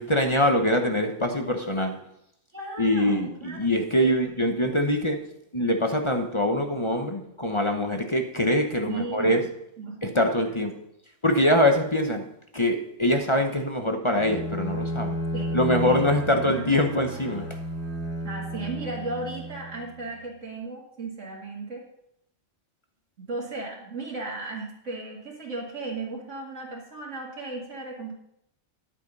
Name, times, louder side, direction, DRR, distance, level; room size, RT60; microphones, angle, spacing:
voice 1, 0.0-2.0 2.8-5.2 5.5-9.4 10.0-10.7 11.2-12.3 12.5-15.2 15.5-17.6, left 1 dB, 25° left, 5 dB, 0.9 m, -24 dB
voice 2, 2.5-3.6 4.0-4.6 8.8-9.4 9.8-10.5 15.3-16.1 16.4-16.9 18.2-21.8 23.2-28.1, right 3 dB, 70° right, -3 dB, 2.4 m, -36 dB
Bowed string instrument, 14.2-20.0, right 1 dB, 10° right, 2.2 m, -32 dB
10.5 x 8.6 x 5.4 m, 0.78 s
omnidirectional pair, 1.3 m